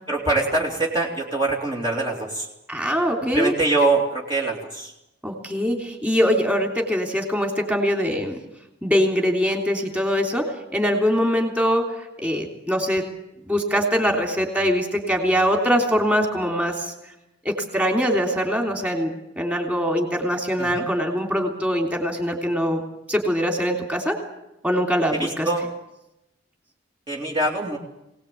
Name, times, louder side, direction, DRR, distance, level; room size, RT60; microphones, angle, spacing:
voice 1, 0.1-2.5 3.3-4.9 20.6-20.8 25.2-25.7 27.1-27.8, right 2 dB, 25° right, -2 dB, 2.7 m, -23 dB
voice 2, 2.7-3.5 5.2-8.4 8.8-13.0 13.4-16.9 17.4-22.8 23.1-24.2 24.6-25.5, equal, 5° right, 2 dB, 3.3 m, -23 dB
24.0 x 18.5 x 8.5 m, 0.88 s
head